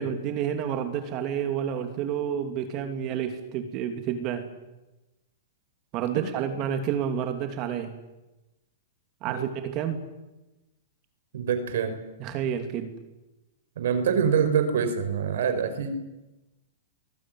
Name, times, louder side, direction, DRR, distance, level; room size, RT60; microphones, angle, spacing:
voice 1, 0.0-4.5 5.9-7.9 9.2-10.0 12.2-12.9, right 8 dB, 35° right, 7 dB, 2.9 m, -29 dB
voice 2, 11.3-11.9 13.8-15.9, right 7 dB, 70° right, 9 dB, 4.9 m, -25 dB
24.5 x 19.5 x 9.3 m, 1.0 s
hypercardioid pair, 135°, 0 cm